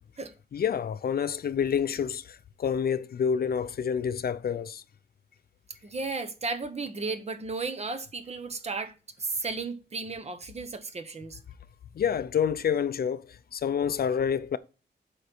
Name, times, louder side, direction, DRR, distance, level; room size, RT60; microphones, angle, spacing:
voice 1, 0.5-4.8 12.0-13.2 13.5-14.6, left 7 dB, 60° left, 0.5 m, -28 dB
voice 2, 5.8-11.4, right 3 dB, 35° right, 0.9 m, -34 dB
8.2 x 5.4 x 4.4 m
wide cardioid pair, 155°, 18 cm